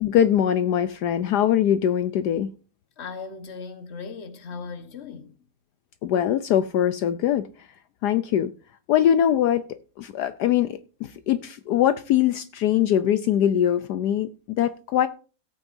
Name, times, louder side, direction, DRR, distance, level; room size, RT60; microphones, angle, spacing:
voice 1, 0.0-2.5 6.0-7.7 8.0-8.5 8.9-9.6 10.0-15.1, left 10 dB, 75° left, 1.2 m, -22 dB
voice 2, 3.0-5.3, left 5 dB, 40° left, 1.5 m, -37 dB
17.0 x 9.0 x 2.7 m
omnidirectional pair, 1.8 m